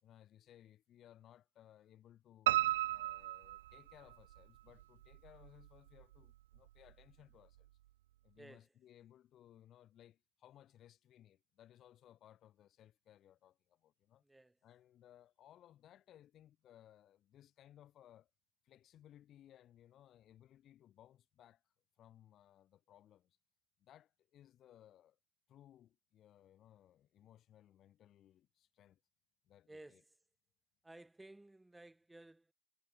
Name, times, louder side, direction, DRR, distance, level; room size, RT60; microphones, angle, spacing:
voice 1, 0.0-2.5 2.9-7.7 8.2-14.2 14.6-18.3 18.6-23.4 23.8-25.2 25.5-29.0 29.4-30.0, left 11 dB, 20° left, 2.8 m, -63 dB
Piano, 2.5-4.4 4.8-5.7 6.0-6.1 6.5-6.6 6.9-7.0, right 15 dB, 50° right, 0.3 m, -35 dB
voice 2, 8.4-8.7 14.2-14.6 29.7-30.2 30.8-32.5, right 2 dB, 5° right, 2.0 m, -57 dB
hypercardioid pair, 155°, 0 cm